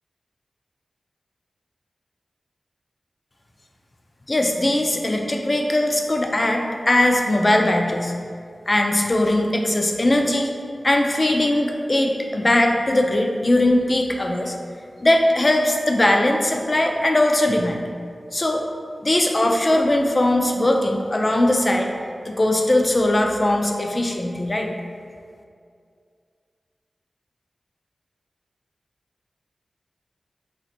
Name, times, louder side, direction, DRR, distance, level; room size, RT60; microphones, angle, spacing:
voice 1, 4.3-8.1 8.7-10.5 10.8-14.6 15.0-17.8 18.3-18.6 19.0-21.9 22.3-24.7, left 1 dB, 30° left, 2 dB, 0.3 m, -20 dB
3.0 x 2.4 x 4.2 m, 2.3 s
wide cardioid pair, 95°, 0 cm